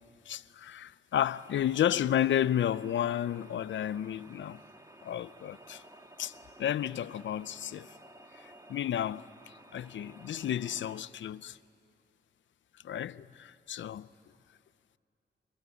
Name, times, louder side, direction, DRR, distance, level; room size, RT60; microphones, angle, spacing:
voice 1, 0.3-4.6 5.0-5.8 6.2-7.9 8.3-9.2 9.7-11.6 12.8-14.1, left 10 dB, 85° left, 0.6 m, -32 dB
sound 1, 1.1-11.0, right 1 dB, 20° right, 1.7 m, -55 dB
24.5 x 22.5 x 9.7 m
cardioid pair, 85°, 19 cm